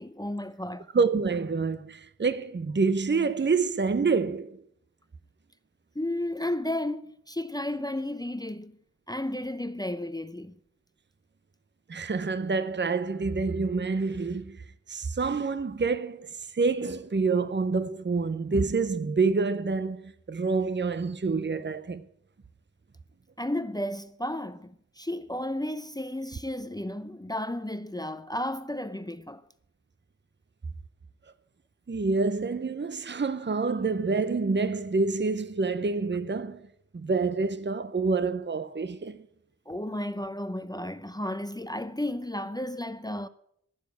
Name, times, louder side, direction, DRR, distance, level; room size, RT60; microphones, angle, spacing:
voice 1, 0.0-0.9 5.9-8.7 9.1-10.5 23.4-29.4 39.7-43.3, left 1 dB, 15° left, 0.7 m, -33 dB
voice 2, 0.9-4.6 11.9-22.0 31.9-36.7 36.9-39.2, right 4 dB, 40° right, 0.7 m, -27 dB
15.0 x 7.3 x 9.5 m
wide cardioid pair, 70°, 29 cm